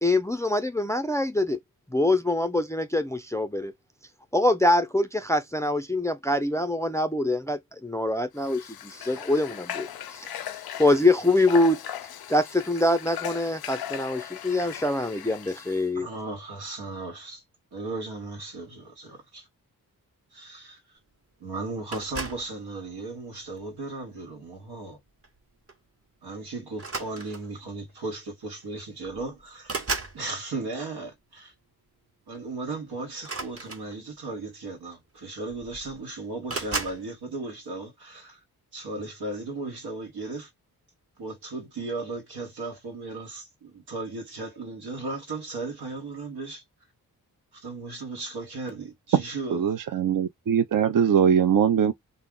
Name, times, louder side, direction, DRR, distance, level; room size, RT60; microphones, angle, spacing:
voice 1, 0.0-1.6 1.9-3.7 4.3-10.3 10.8-11.8 12.3-16.1, left 2 dB, 10° left, 0.4 m, -24 dB
Water / Water tap faucet, 8.4-15.9, left 10 dB, 70° left, 0.5 m, -38 dB
voice 2, 15.9-17.4 17.7-19.5 20.3-20.8 21.4-25.0 26.2-29.3 30.1-31.5 32.3-38.4 38.7-40.5 41.2-46.6 47.5-49.6, right 3 dB, 85° right, 1.3 m, -36 dB
sound 1, 21.9-22.5 23.4-23.7 25.2-25.4 25.7-25.9 26.7-27.6 28.6-28.7 29.0-30.2 33.2-34.3 35.2-35.3 35.5-36.0 36.5-37.0, right 3 dB, 35° right, 1.0 m, -34 dB
voice 3, 49.5-51.9, right 8 dB, 55° right, 0.6 m, -21 dB
2.3 x 2.0 x 3.6 m
cardioid pair, 50°, 39 cm